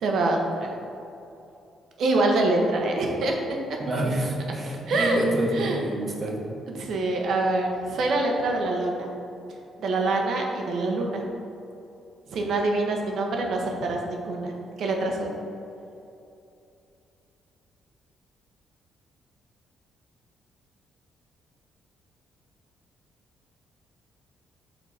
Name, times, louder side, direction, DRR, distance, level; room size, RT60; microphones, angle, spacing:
voice 1, 0.0-0.7 2.0-3.4 4.9-5.2 5.5-5.8 6.8-9.1 9.8-11.2 12.3-14.5 14.8-15.3, right 2 dB, 65° right, 1 dB, 1.0 m, -25 dB
voice 2, 3.8-6.4, right 1 dB, 40° right, 0 dB, 1.1 m, -27 dB
6.0 x 3.8 x 5.6 m, 2.7 s
cardioid pair, 90°, 0 cm